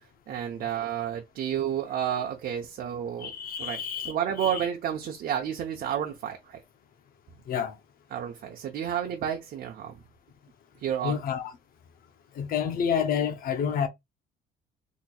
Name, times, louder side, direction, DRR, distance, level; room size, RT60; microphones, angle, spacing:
voice 1, 0.3-3.3 3.6-3.8 4.0-6.6 8.1-10.0 10.8-11.2, right 9 dB, 60° right, 0.7 m, -31 dB
voice 2, 3.2-4.7 7.5-7.8 11.0-11.5 12.3-13.9, left 7 dB, 60° left, 0.7 m, -29 dB
4.2 x 3.0 x 2.3 m
cardioid pair, 110°, 17 cm